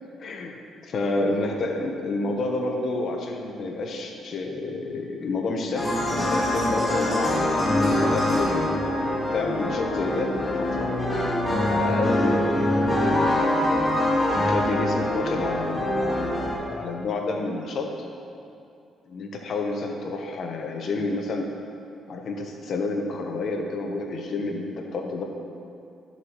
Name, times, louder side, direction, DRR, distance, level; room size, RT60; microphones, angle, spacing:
voice 1, 0.2-0.6 0.8-9.0 9.3-10.9 11.7-13.9 14.3-17.9 19.1-21.5 22.1-25.2, left 3 dB, 60° left, 2 dB, 1.0 m, -29 dB
sound 1, 5.8-16.5, left 1 dB, 10° left, 2.3 m, -24 dB
13.0 x 6.9 x 3.1 m, 2.6 s
cardioid pair, 90°, 0 cm